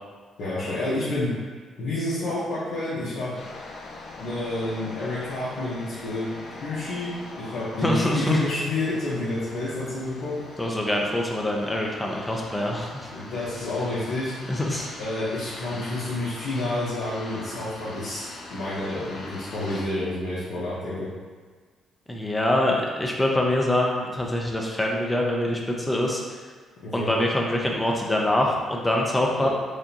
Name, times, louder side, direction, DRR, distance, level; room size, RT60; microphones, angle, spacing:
voice 1, 0.4-1.3 1.8-3.3 4.2-6.3 6.6-10.4 13.1-14.3 15.0-18.2 18.5-21.1 26.8-27.1 29.3-29.5, left 2 dB, 85° left, -12 dB, 1.1 m, -29 dB
sound 1, 3.3-19.8, left 2 dB, 55° left, 0.6 m, -42 dB
voice 2, 7.8-8.4 10.6-13.1 14.5-14.9 22.1-26.4 26.9-29.5, left 1 dB, 15° left, -1 dB, 0.6 m, -24 dB
4.8 x 2.6 x 2.9 m, 1.5 s
cardioid pair, 90°, 0 cm